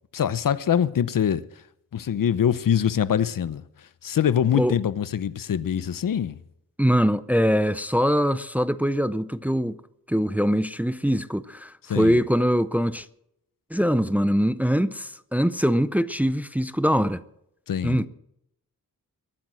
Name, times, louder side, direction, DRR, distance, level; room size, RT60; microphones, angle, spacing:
voice 1, 0.1-1.4 1.9-3.6 4.0-6.4 11.9-12.2 17.7-18.1, left 9 dB, 70° left, 0.8 m, -24 dB
voice 2, 6.8-9.7 10.1-13.1 13.7-17.2 17.8-18.1, equal, 5° right, 0.5 m, -23 dB
22.5 x 8.7 x 6.3 m
wide cardioid pair, 140°, 35 cm